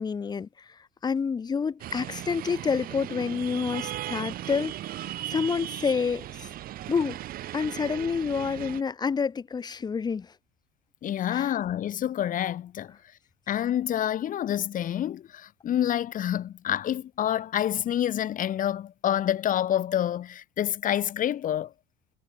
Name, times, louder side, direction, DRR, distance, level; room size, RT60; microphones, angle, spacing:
voice 1, 0.0-6.5 6.9-7.2 7.5-10.3 11.3-11.5, left 5 dB, 20° left, 0.6 m, -29 dB
sound 1, 1.8-8.8, right 14 dB, 50° right, 0.8 m, -37 dB
voice 2, 11.0-12.9 13.5-21.7, left 11 dB, 45° left, 1.1 m, -28 dB
hypercardioid pair, 85°, 20 cm